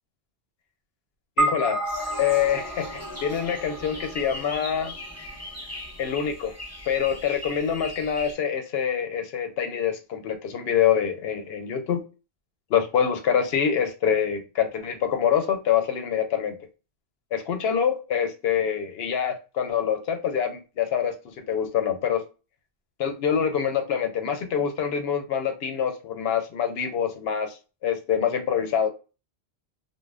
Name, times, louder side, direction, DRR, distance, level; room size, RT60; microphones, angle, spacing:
voice 1, 1.4-1.8 2.2-4.9 6.0-6.5 6.9-12.0 12.7-16.6 17.3-22.2 23.0-28.9, left 8 dB, 75° left, 0.8 m, -25 dB
sound 1, 1.4-5.9, right 1 dB, 25° right, 0.6 m, -31 dB
sound 2, 1.8-8.3, left 1 dB, 20° left, 0.6 m, -40 dB
2.4 x 2.1 x 3.2 m
omnidirectional pair, 1.1 m